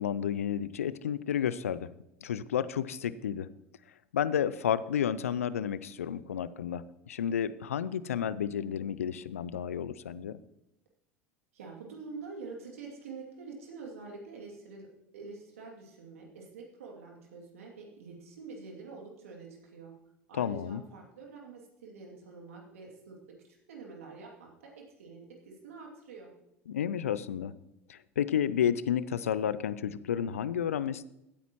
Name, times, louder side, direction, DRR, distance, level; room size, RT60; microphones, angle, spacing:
voice 1, 0.0-1.9 2.2-3.5 4.1-10.4 20.4-20.8 26.7-27.5 27.9-31.1, left 9 dB, 80° left, 17 dB, 0.4 m, -31 dB
voice 2, 11.5-14.9 15.1-19.9 20.3-23.2 23.4-26.3, right 4 dB, 75° right, 0 dB, 2.6 m, -46 dB
16.0 x 9.1 x 3.0 m, 0.87 s
hypercardioid pair, 75°, 8 cm